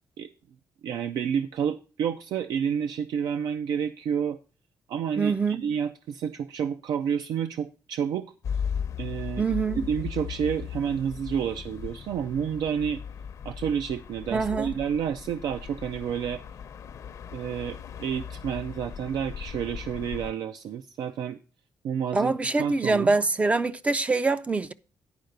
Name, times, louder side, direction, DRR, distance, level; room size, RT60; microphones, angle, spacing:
voice 1, 0.8-4.4 4.9-8.3 9.0-9.4 9.9-13.0 13.4-16.4 17.3-21.4 21.8-22.3 22.6-23.1, right 8 dB, 85° right, 0.5 m, -30 dB
voice 2, 5.2-5.7 9.4-9.9 14.3-14.7 22.1-24.7, right 3 dB, 20° right, 0.4 m, -25 dB
sound 1, 8.4-20.3, left 7 dB, 55° left, 0.7 m, -37 dB
10.5 x 4.7 x 6.5 m
cardioid pair, 130°, 7 cm